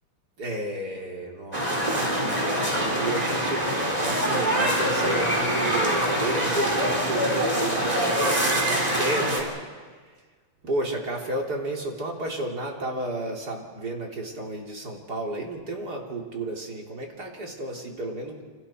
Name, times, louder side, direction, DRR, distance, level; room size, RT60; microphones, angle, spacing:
voice 1, 0.4-9.5 10.6-18.4, right 2 dB, 50° right, 0 dB, 3.7 m, -32 dB
sound 1, 1.5-9.4, right 1 dB, 20° right, 3.9 m, -24 dB
29.0 x 26.5 x 4.5 m, 1.5 s
omnidirectional pair, 2.2 m